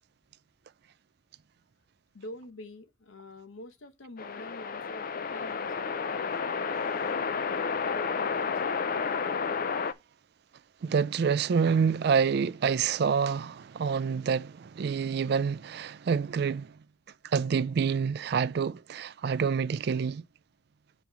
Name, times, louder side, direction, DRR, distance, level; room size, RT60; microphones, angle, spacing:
voice 1, 2.1-6.4 6.8-9.5, left 2 dB, 80° left, 0.9 m, -47 dB
sound 1, 4.2-9.9, left 5 dB, 45° left, 0.4 m, -31 dB
voice 2, 10.8-16.8 17.3-20.2, right 6 dB, 55° right, 0.3 m, -27 dB
5.2 x 4.6 x 5.6 m
head